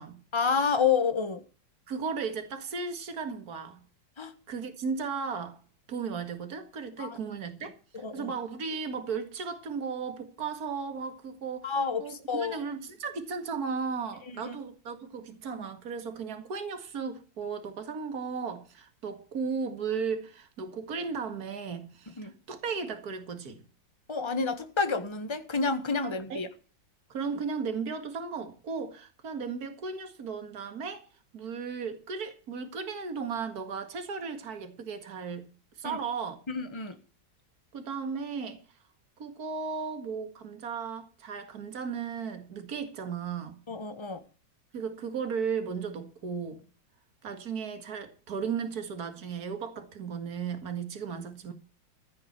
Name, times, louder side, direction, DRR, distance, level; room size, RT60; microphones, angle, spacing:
voice 1, 0.3-1.4 4.2-4.3 7.0-7.2 8.0-8.3 11.6-12.6 14.3-14.6 22.2-22.3 24.1-26.5 35.8-36.0 36.5-37.0 43.7-44.2, left 5 dB, 15° left, 1.3 m, -29 dB
voice 2, 1.9-3.8 4.5-5.6 5.9-23.6 26.0-26.4 27.1-31.1 31.3-35.5 35.8-36.4 37.7-38.6 39.2-43.6 44.7-46.6 47.2-51.5, right 5 dB, 50° right, 2.3 m, -35 dB
15.5 x 6.0 x 8.1 m
omnidirectional pair, 2.0 m